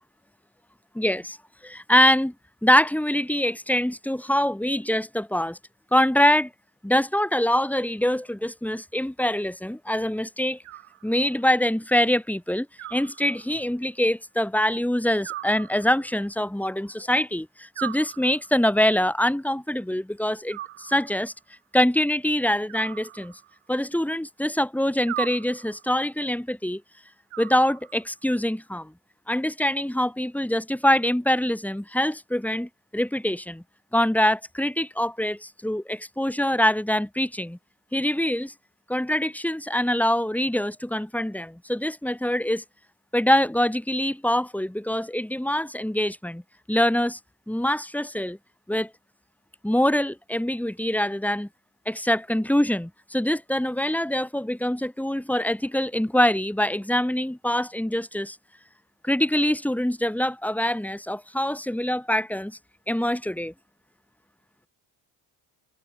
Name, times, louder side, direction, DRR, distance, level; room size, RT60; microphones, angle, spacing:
voice 1, 0.9-1.4 1.6-2.3 2.6-5.6 5.9-6.5 6.8-10.6 11.0-21.3 21.7-23.3 23.7-26.8 27.4-28.9 29.3-33.6 33.9-37.6 37.9-38.5 38.9-42.6 43.1-46.4 46.7-47.2 47.5-48.4 48.7-48.9 49.6-51.5 51.9-58.4 59.0-62.6 62.9-63.5, left 1 dB, 5° left, 2.3 m, -24 dB
Animal, 10.6-11.5 12.8-13.8 15.2-16.3 17.7-18.8 20.5-21.4 22.7-23.8 25.1-26.0 27.3-28.2, right 14 dB, 85° right, 5.3 m, -39 dB
cardioid pair, 120°, 48 cm